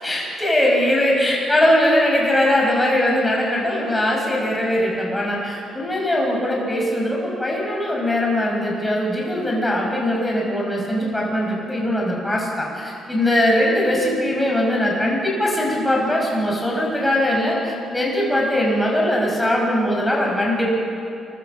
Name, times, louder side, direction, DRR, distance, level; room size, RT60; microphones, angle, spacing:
voice 1, 0.0-20.7, left 1 dB, 10° left, -3 dB, 6.0 m, -21 dB
24.0 x 14.5 x 7.5 m, 2.6 s
cardioid pair, 90°, 0 cm